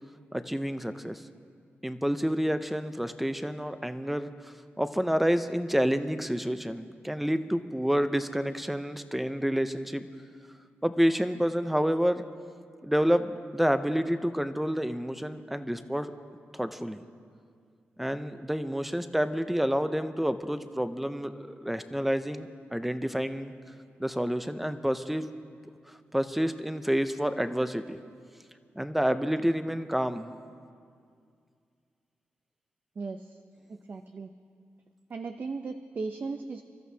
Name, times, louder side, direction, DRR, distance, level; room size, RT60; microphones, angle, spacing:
voice 1, 0.3-1.2 1.8-10.1 10.8-12.3 12.8-17.0 18.0-23.5 24.0-25.3 26.1-28.0 28.8-30.3, equal, 5° right, 10 dB, 0.6 m, -29 dB
voice 2, 33.0-33.4 33.7-34.3 35.1-36.6, right 4 dB, 45° right, 7 dB, 0.5 m, -37 dB
27.5 x 13.5 x 2.8 m, 2.2 s
wide cardioid pair, 115°, 4 cm